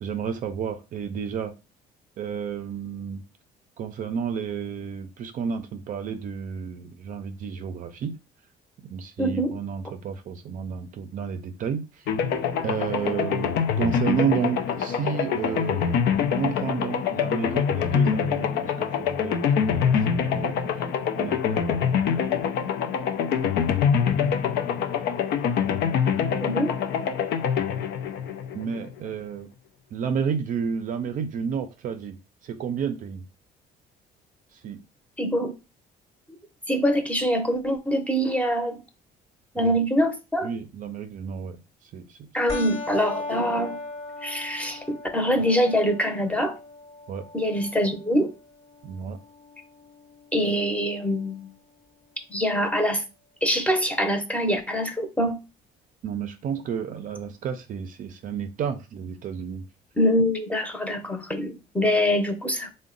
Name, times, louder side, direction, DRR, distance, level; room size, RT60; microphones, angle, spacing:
voice 1, 0.0-1.5 2.2-3.2 3.8-8.1 8.9-12.1 12.6-16.0 16.4-20.9 21.2-22.1 28.5-29.5 29.9-32.2 32.4-33.3 34.5-34.8 39.6-39.7 40.4-42.2 47.1-47.3 48.8-49.2 56.0-59.7, right 7 dB, 50° right, 0.5 m, -31 dB
voice 2, 9.2-9.6 26.4-26.7 35.2-35.5 36.7-38.8 39.5-40.5 42.3-43.8 44.2-46.5 47.3-48.3 50.3-51.5 52.3-53.0 53.4-55.4 60.0-62.7, equal, 10° left, 0.7 m, -24 dB
sound 1, 12.1-29.0, left 7 dB, 70° left, 0.5 m, -25 dB
sound 2, 42.5-51.5, left 2 dB, 35° left, 0.9 m, -39 dB
3.6 x 2.1 x 3.8 m
cardioid pair, 110°, 17 cm